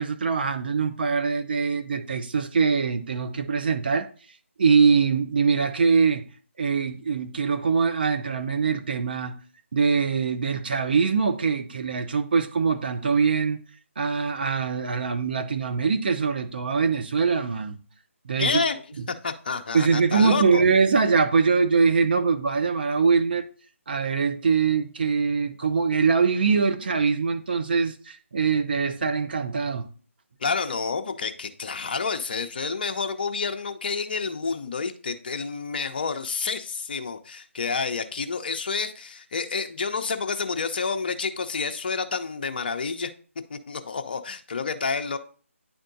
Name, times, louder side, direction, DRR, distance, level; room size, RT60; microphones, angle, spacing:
voice 1, 0.0-4.1 4.6-6.2 6.6-9.3 9.7-13.6 14.0-17.8 18.2-18.6 19.7-23.5 23.9-29.9, right 5 dB, 45° right, 0.7 m, -23 dB
voice 2, 18.4-18.8 19.2-20.6 30.4-43.1 43.5-45.2, left 5 dB, 40° left, 0.7 m, -29 dB
9.8 x 4.3 x 2.6 m
figure-of-eight pair, 155°, 7 cm